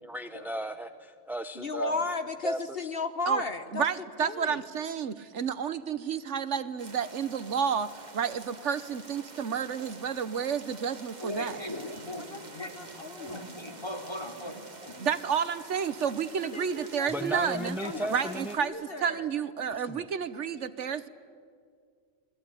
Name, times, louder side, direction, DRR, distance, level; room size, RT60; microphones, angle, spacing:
voice 1, 0.0-1.9 2.4-3.0 17.1-18.6 19.9-20.1, right 1 dB, ahead, 9 dB, 0.6 m, -35 dB
voice 2, 1.5-3.9 4.2-4.6 12.3-13.7 16.5-19.3, left 3 dB, 50° left, 9 dB, 1.3 m, -36 dB
voice 3, 3.7-11.6 15.0-17.8 18.1-21.1, right 7 dB, 70° right, 14 dB, 1.3 m, -31 dB
sound 1, 6.8-18.6, right 3 dB, 35° right, 1.9 m, -48 dB
voice 4, 11.2-12.9 13.1-15.0 17.7-18.1, left 1 dB, 20° left, 3 dB, 3.3 m, -39 dB
28.5 x 20.5 x 9.9 m, 2.1 s
omnidirectional pair, 1.3 m